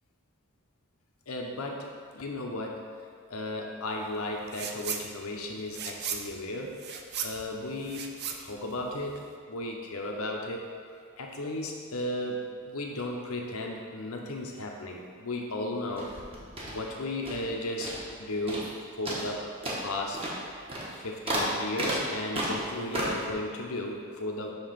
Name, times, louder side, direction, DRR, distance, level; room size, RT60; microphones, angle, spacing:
voice 1, 1.3-2.8 3.3-6.8 7.2-9.2 9.5-10.7 11.2-16.1 16.7-18.7 19.0-20.2 21.0-24.5, left 1 dB, 85° left, 1 dB, 0.9 m, -35 dB
sound 1, 4.5-5.1 5.4-9.3, right 7 dB, 50° right, 0.5 m, -37 dB
sound 2, 15.9-17.5 17.8-18.2 18.5-18.8 19.1-23.3, right 1 dB, 25° right, 1.0 m, -33 dB
7.0 x 3.0 x 5.7 m, 2.1 s
head